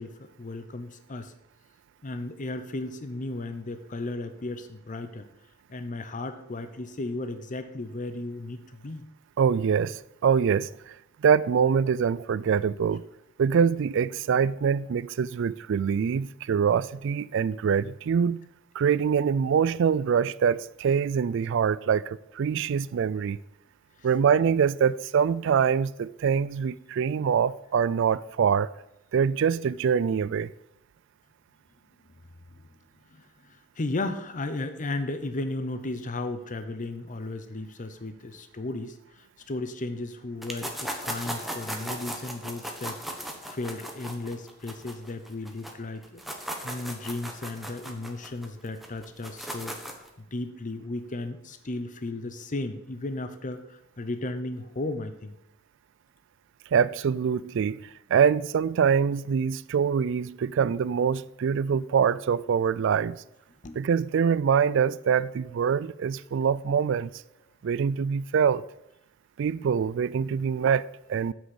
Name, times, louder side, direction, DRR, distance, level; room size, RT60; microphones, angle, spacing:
voice 1, 0.0-1.3 2.0-5.3 5.7-9.0 24.0-24.1 32.6-32.7 33.1-46.2 46.6-50.0 50.3-55.4 63.6-63.9, left 2 dB, 40° left, 0.7 m, -35 dB
voice 2, 9.4-10.9 11.2-13.0 13.4-18.4 18.7-23.4 24.0-28.7 29.1-30.5 56.7-63.2 63.8-67.1 67.6-68.6 69.4-71.3, right 7 dB, 65° right, 0.3 m, -24 dB
sound 1, 40.4-45.7 46.0-50.1, right 1 dB, ahead, 1.2 m, -37 dB
8.0 x 6.2 x 7.0 m
head